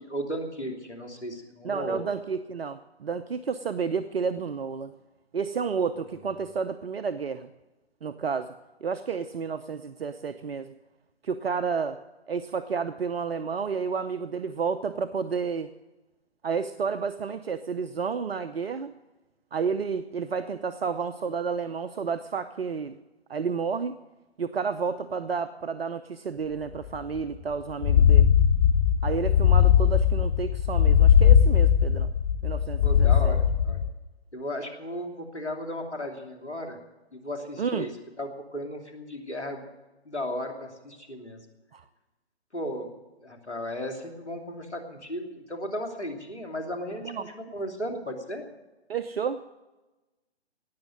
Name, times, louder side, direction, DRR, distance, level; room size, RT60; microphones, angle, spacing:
voice 1, 0.1-2.0 32.8-33.8 34.3-36.8 37.1-37.9 38.2-39.7 40.0-41.4 42.5-42.9 43.2-48.4, equal, 90° left, 4 dB, 3.0 m, -35 dB
voice 2, 1.6-4.9 5.3-7.5 8.0-8.5 8.8-10.7 11.2-12.0 12.3-15.7 16.4-18.9 19.5-23.0 23.3-23.9 24.4-28.3 29.0-32.1 32.4-33.4 37.6-37.9 41.7-41.8 47.0-47.3 48.9-49.5, right 5 dB, 60° right, 12 dB, 0.8 m, -31 dB
sound 1, 26.9-27.0 27.2-27.3 27.7-33.9, left 8 dB, 30° left, 0.9 m, -19 dB
18.5 x 7.4 x 9.2 m, 1.1 s
figure-of-eight pair, 135°, 33 cm